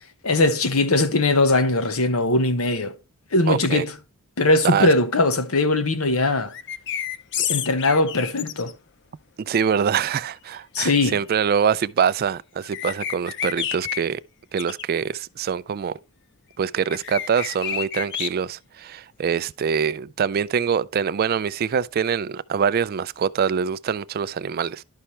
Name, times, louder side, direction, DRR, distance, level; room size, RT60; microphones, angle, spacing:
voice 1, 0.2-2.9 3.3-3.9 4.4-6.5 7.5-8.7 10.7-11.2, left 2 dB, 80° left, 1.1 m, -20 dB
voice 2, 3.5-3.8 4.6-4.9 9.4-14.2 14.5-15.9 16.6-24.8, right 7 dB, 45° right, 0.3 m, -24 dB
sound 1, 6.5-8.7 12.6-14.0 14.6-14.8 16.9-18.3, left 9 dB, 55° left, 0.6 m, -29 dB
11.5 x 5.7 x 3.1 m
head